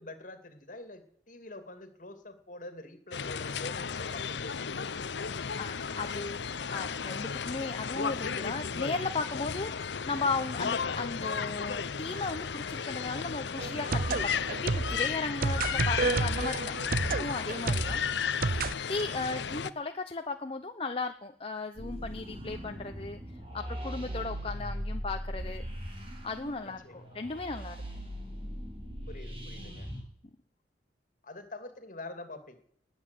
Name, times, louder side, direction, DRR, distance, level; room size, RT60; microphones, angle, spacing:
voice 1, 0.0-5.4 16.0-16.4 17.5-17.9 26.6-27.2 29.1-29.9 31.2-32.6, left 2 dB, 50° left, 9 dB, 2.5 m, -46 dB
sound 1, 3.1-19.7, left 6 dB, 85° left, 0.7 m, -34 dB
voice 2, 5.6-18.0 18.9-23.2 23.5-25.6 26.2-27.8 29.6-30.0, left 3 dB, 35° left, 6 dB, 0.8 m, -36 dB
sound 2, 13.6-18.7, right 3 dB, 55° right, 0.7 m, -31 dB
sound 3, 21.8-30.0, equal, 35° right, 4.1 m, -40 dB
20.0 x 8.2 x 8.3 m, 0.67 s
head